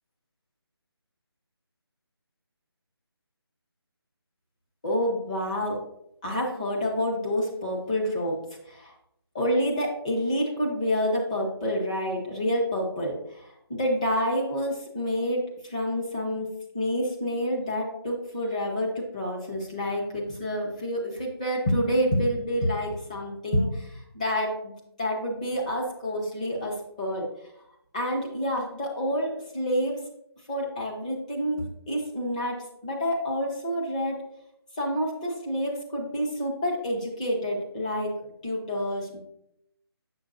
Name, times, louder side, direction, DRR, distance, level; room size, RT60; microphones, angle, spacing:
voice 1, 4.8-5.8 6.2-8.4 8.6-8.9 9.3-16.5 16.7-24.7 25.0-27.3 27.9-30.0 30.5-34.2 34.8-38.1 38.4-39.2, equal, 15° left, -2 dB, 0.8 m, -28 dB
7.8 x 6.2 x 2.5 m, 0.77 s
figure-of-eight pair, 170°, 14 cm